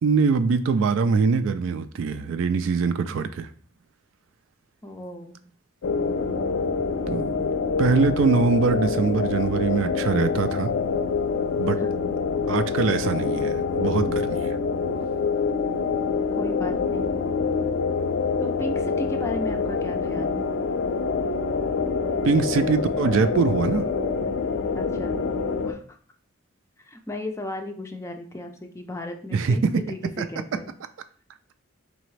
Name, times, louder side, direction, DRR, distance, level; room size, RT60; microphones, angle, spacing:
voice 1, 0.0-3.5 7.1-10.7 11.6-11.8 12.5-14.6 22.2-23.9 29.3-29.7 30.2-30.3, right 5 dB, 75° right, 10 dB, 0.3 m, -23 dB
voice 2, 4.8-5.4 11.8-12.2 16.4-17.1 18.4-20.4 24.7-25.2 25.6-26.0 26.8-30.7, left 1 dB, 15° left, 4 dB, 0.4 m, -35 dB
sound 1, 5.8-25.7, left 5 dB, 70° left, 0.4 m, -26 dB
3.9 x 3.4 x 3.2 m, 0.44 s
head